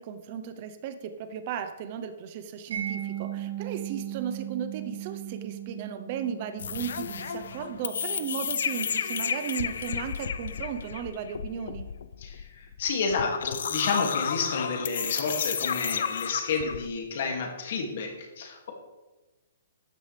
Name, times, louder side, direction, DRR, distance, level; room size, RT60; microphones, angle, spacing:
voice 1, 0.0-11.9, right 8 dB, 30° right, 9 dB, 0.8 m, -35 dB
Mallet percussion, 2.7-9.5, right 11 dB, 65° right, 4.0 m, -38 dB
sound 1, 6.6-16.9, left 7 dB, 65° left, 0.6 m, -32 dB
voice 2, 12.2-18.7, left 4 dB, 45° left, 2 dB, 2.4 m, -30 dB
13.0 x 10.5 x 3.4 m, 1.1 s
hypercardioid pair, 175°, 0 cm